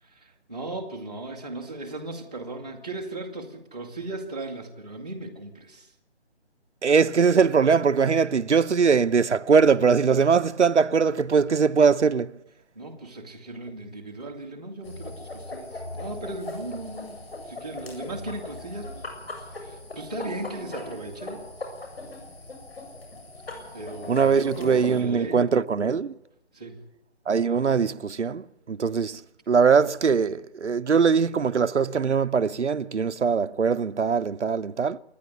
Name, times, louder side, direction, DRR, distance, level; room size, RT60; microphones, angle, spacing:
voice 1, 0.0-5.9 12.7-17.2 17.4-19.1 19.4-21.5 23.7-25.4 26.5-26.8, right 2 dB, 5° right, 0.8 m, -37 dB
voice 2, 6.8-12.3 24.1-26.1 27.3-29.2 29.5-35.0, right 5 dB, 85° right, 0.9 m, -21 dB
sound 1, 14.8-25.0, left 2 dB, 60° left, 7.9 m, -39 dB
27.5 x 10.5 x 9.7 m
hypercardioid pair, 175°, 34 cm